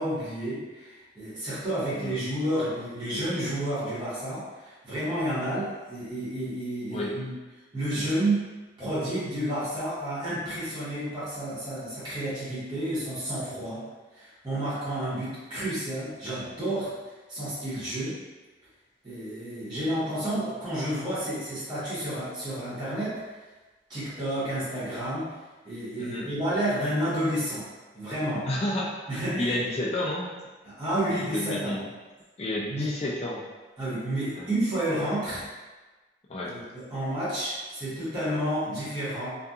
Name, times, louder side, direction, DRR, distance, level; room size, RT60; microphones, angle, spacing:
voice 1, 0.0-7.3 7.7-8.5 8.8-13.8 14.1-16.9 17.3-18.2 19.0-23.2 23.9-25.3 25.6-27.7 27.9-28.5 29.1-29.5 30.6-31.7 32.7-32.9 33.8-35.4 36.4-39.3, right 1 dB, 20° right, -13 dB, 1.1 m, -30 dB
voice 2, 28.4-29.0 29.3-30.3 31.1-31.9 32.4-33.4 34.4-34.5 36.3-36.5, left 1 dB, 30° left, -3 dB, 0.3 m, -30 dB
2.7 x 2.4 x 2.3 m, 1.2 s
head